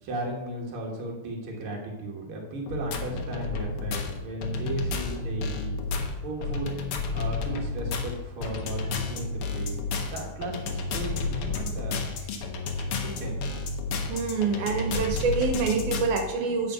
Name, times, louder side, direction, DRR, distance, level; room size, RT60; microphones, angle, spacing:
voice 1, 0.0-5.7 6.2-6.7 7.1-9.8 10.1-12.0 13.0-13.4, right 1 dB, 50° right, -1 dB, 1.9 m, -35 dB
sound 1, 2.7-16.2, left 3 dB, 70° left, 1.3 m, -31 dB
voice 2, 14.1-16.7, right 4 dB, 80° right, 3 dB, 2.4 m, -26 dB
8.5 x 5.0 x 5.6 m, 1.2 s
omnidirectional pair, 3.7 m